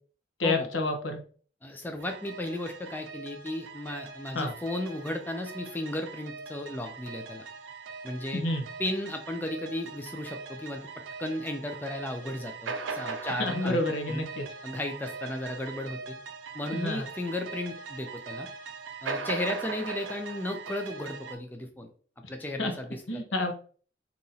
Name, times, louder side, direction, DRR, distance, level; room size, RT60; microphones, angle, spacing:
voice 1, 0.4-1.2 4.3-4.5 8.3-8.6 13.4-14.4 16.7-17.1 22.6-22.7 23.1-23.5, left 2 dB, 80° left, 4 dB, 0.8 m, -29 dB
voice 2, 1.6-7.5 8.0-8.4 8.8-10.8 11.2-13.8 14.1-14.2 14.6-16.2 16.5-18.5 19.0-21.9 22.3-23.2, left 1 dB, 10° left, 4 dB, 0.3 m, -35 dB
sound 1, 2.0-21.4, right 4 dB, 80° right, 0.5 m, -40 dB
2.9 x 2.6 x 3.9 m, 0.42 s
head